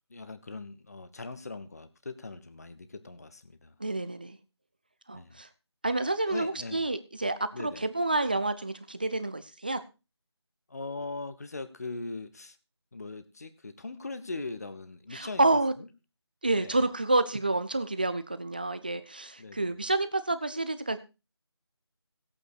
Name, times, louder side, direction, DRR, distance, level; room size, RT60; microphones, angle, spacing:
voice 1, 0.1-3.7 5.1-5.4 6.3-6.8 7.5-7.8 10.7-12.6 12.9-15.5 15.8-15.9 16.6-16.9 19.4-19.7, left 3 dB, 35° left, 12 dB, 1.1 m, -40 dB
voice 2, 3.8-4.4 5.1-5.5 5.8-9.8 15.1-15.7 16.4-21.0, right 2 dB, 20° right, 12 dB, 0.6 m, -29 dB
16.0 x 8.8 x 4.6 m, 0.30 s
figure-of-eight pair, 165°, 14 cm